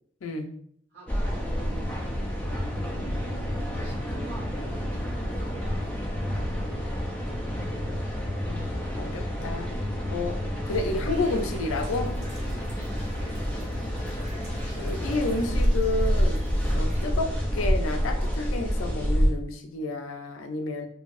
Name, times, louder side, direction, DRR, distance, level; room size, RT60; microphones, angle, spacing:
voice 1, 0.9-1.9 3.0-3.5 3.8-6.9 13.1-14.1, right 2 dB, 55° right, -11 dB, 1.3 m, -47 dB
sound 1, 1.1-19.3, equal, 5° left, 0.4 m, -28 dB
voice 2, 8.5-9.7 10.1-10.4 10.7-12.1 14.8-16.4 16.8-20.9, left 2 dB, 85° left, 5 dB, 0.4 m, -30 dB
sound 2, 10.7-17.1, right 1 dB, 35° right, 0.7 m, -47 dB
2.7 x 2.6 x 2.4 m, 0.64 s
head